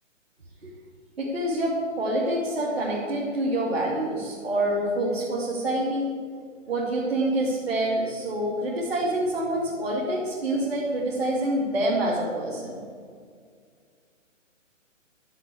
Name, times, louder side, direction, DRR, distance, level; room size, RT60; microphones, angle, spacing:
voice 1, 1.2-6.1 6.7-12.8, right 1 dB, ahead, -18 dB, 1.0 m, -26 dB
11.5 x 7.5 x 8.4 m, 2.1 s
hypercardioid pair, 175°, 39 cm